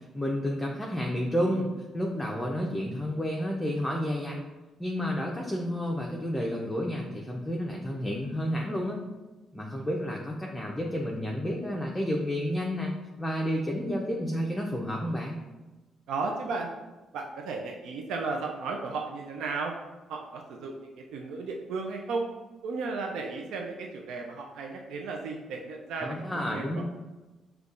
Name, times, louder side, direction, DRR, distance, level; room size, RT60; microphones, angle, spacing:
voice 1, 0.1-4.4 4.8-9.0 9.5-15.4 26.0-26.8, equal, 10° left, -1 dB, 0.5 m, -31 dB
voice 2, 16.1-16.7 17.1-19.7 20.1-22.3 22.6-26.8, right 4 dB, 85° right, 1 dB, 0.4 m, -34 dB
5.1 x 2.3 x 2.4 m, 1.1 s
cardioid pair, 90°, 0 cm